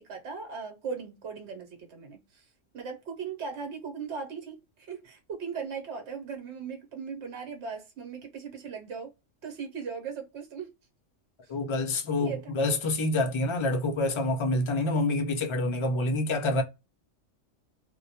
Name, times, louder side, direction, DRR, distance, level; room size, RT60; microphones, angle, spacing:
voice 1, 0.0-2.5 2.7-9.1 9.4-10.7 12.2-12.5, right 6 dB, 65° right, 1.1 m, -38 dB
voice 2, 11.5-16.6, left 2 dB, 50° left, 0.3 m, -27 dB
2.2 x 2.1 x 2.7 m
omnidirectional pair, 1.3 m